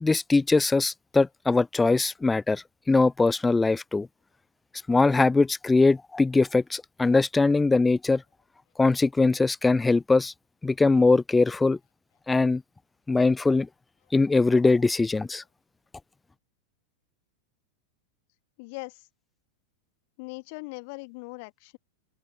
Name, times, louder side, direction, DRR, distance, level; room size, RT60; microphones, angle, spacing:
voice 1, 0.0-4.1 4.9-8.2 8.8-10.3 10.6-11.8 12.3-12.6 13.1-13.7 14.1-15.4, left 3 dB, 10° left, 0.4 m, -22 dB
voice 2, 18.6-19.1 20.2-21.8, left 30 dB, 45° left, 2.0 m, -40 dB
figure-of-eight pair, 90°, 0 cm